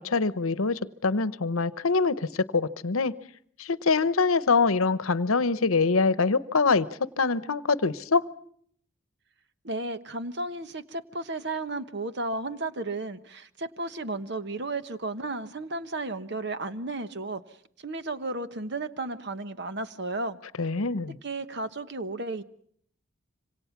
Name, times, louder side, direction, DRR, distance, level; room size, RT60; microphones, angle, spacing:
voice 1, 0.0-3.1 3.6-6.9 7.2-8.3 20.6-21.2, left 4 dB, 80° left, 16 dB, 0.9 m, -24 dB
voice 2, 9.6-17.4 17.8-20.4 21.2-22.4, right 2 dB, 50° right, 11 dB, 1.1 m, -33 dB
26.5 x 25.5 x 5.9 m, 0.63 s
head